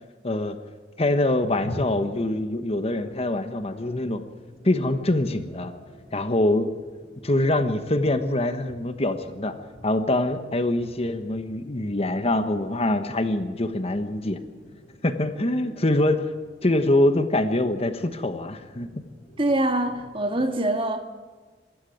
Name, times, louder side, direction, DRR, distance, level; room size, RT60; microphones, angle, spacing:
voice 1, 0.2-0.6 1.0-4.2 4.6-5.7 6.1-6.7 7.2-9.5 9.8-14.4 15.0-16.3 16.6-19.0, left 1 dB, 35° left, 1.2 m, -24 dB
sound 1, 1.1-20.5, left 1 dB, 5° left, 7.7 m, -46 dB
voice 2, 19.4-21.1, right 1 dB, 30° right, 1.7 m, -24 dB
25.0 x 13.0 x 9.3 m
head